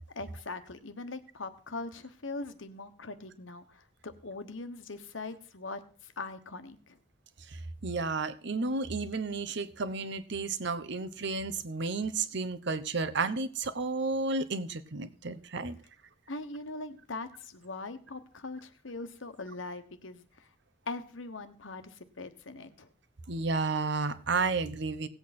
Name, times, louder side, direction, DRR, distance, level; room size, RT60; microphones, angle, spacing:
voice 1, 0.1-7.0 16.3-20.5 20.9-22.9, left 3 dB, 80° left, 10 dB, 1.2 m, -41 dB
voice 2, 7.5-15.8 23.3-25.1, right 3 dB, 65° right, 13 dB, 0.9 m, -32 dB
17.5 x 8.1 x 4.3 m, 0.40 s
head